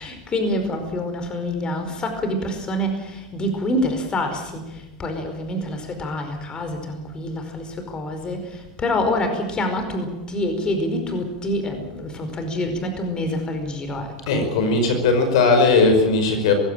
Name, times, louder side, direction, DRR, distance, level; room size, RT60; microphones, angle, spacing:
voice 1, 0.0-14.5, left 1 dB, 25° left, 6 dB, 4.9 m, -26 dB
voice 2, 14.3-16.5, left 3 dB, 70° left, 6 dB, 5.2 m, -18 dB
21.0 x 16.0 x 9.1 m, 0.94 s
hypercardioid pair, 100°, 3 cm